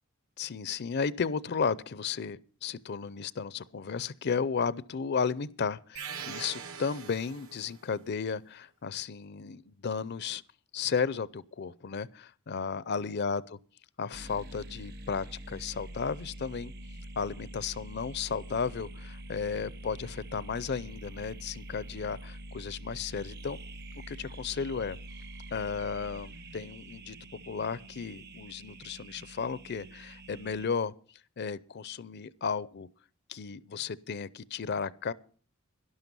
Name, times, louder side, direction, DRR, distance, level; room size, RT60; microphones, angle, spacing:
voice 1, 0.4-10.4 10.7-13.6 14.0-16.7 17.2-23.6 23.9-25.0 25.5-30.9 31.4-32.9 33.3-35.1, left 5 dB, 50° left, 0.5 m, -34 dB
sound 1, 5.9-7.8, right 7 dB, 65° right, 1.5 m, -42 dB
sound 2, 14.1-30.7, right 1 dB, 50° right, 1.1 m, -45 dB
12.0 x 11.5 x 5.3 m
head